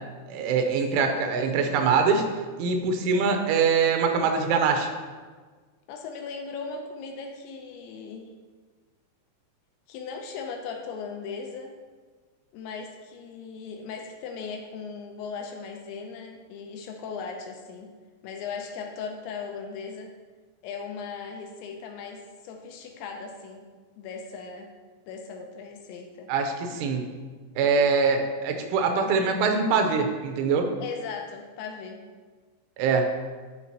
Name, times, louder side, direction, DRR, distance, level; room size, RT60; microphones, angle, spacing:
voice 1, 0.3-2.3 2.6-4.9 26.3-27.1 27.6-30.7 32.8-33.1, right 5 dB, 90° right, 4 dB, 3.3 m, -23 dB
voice 2, 5.9-8.3 9.9-11.7 12.5-17.9 18.2-20.1 20.6-23.6 24.0-24.7 25.1-26.3 30.8-32.0, left 5 dB, 80° left, 3 dB, 2.8 m, -38 dB
11.0 x 6.0 x 2.9 m, 1.4 s
omnidirectional pair, 5.4 m